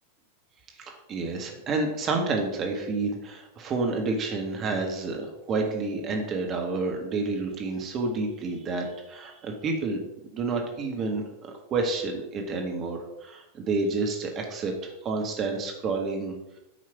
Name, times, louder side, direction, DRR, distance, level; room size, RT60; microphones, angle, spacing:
voice 1, 0.8-10.0 10.3-16.6, right 3 dB, 30° right, 2 dB, 1.7 m, -29 dB
9.5 x 5.6 x 6.0 m, 0.94 s
figure-of-eight pair, 90°, 0 cm